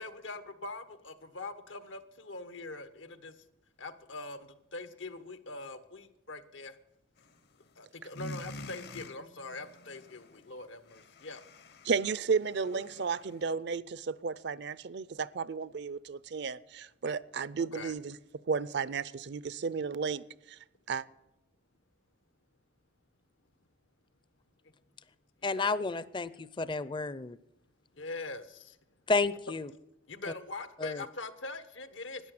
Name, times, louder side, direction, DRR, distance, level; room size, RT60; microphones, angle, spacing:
voice 1, 0.0-3.4 3.8-6.8 7.8-11.4 12.7-13.0 17.7-17.9 25.5-25.7 28.0-28.8 30.1-32.3, left 2 dB, 85° left, 1.2 m, -43 dB
sound 1, 7.2-7.7 8.0-13.6, left 1 dB, 55° left, 0.9 m, -48 dB
voice 2, 11.8-18.1 18.5-20.6 20.9-21.0, right 5 dB, 60° right, 0.5 m, -33 dB
voice 3, 25.4-27.4 29.1-29.7 30.8-31.0, left 3 dB, 25° left, 0.5 m, -31 dB
13.5 x 10.0 x 7.7 m
head